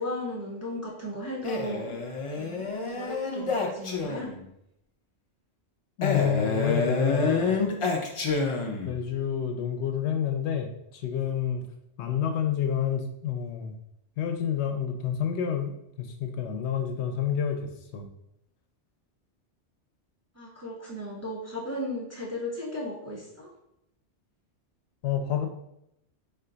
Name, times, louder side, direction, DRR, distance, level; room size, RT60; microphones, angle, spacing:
voice 1, 0.0-2.0 2.4-2.6 2.9-4.3 20.3-23.5, left 1 dB, 20° right, -3 dB, 0.5 m, -35 dB
Male speech man speaking, 1.4-4.4 6.0-9.0, left 4 dB, 55° left, 0.3 m, -28 dB
voice 2, 6.0-7.5 8.8-11.6 12.0-13.7 14.2-17.7 17.9-18.1 25.0-25.5, left 8 dB, 75° left, 5 dB, 0.8 m, -29 dB
3.8 x 2.2 x 3.8 m, 0.80 s
omnidirectional pair, 1.2 m